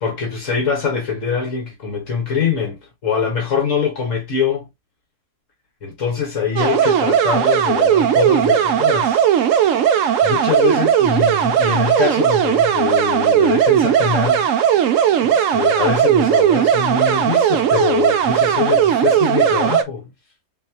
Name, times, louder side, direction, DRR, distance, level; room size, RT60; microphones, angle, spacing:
voice 1, 0.0-4.7 5.8-9.2 9.5-9.8 10.2-14.5 15.2-20.1, left 6 dB, 60° left, 1.6 m, -23 dB
sound 1, 6.6-19.8, right 9 dB, 70° right, 1.0 m, -16 dB
4.1 x 3.2 x 2.8 m
omnidirectional pair, 1.5 m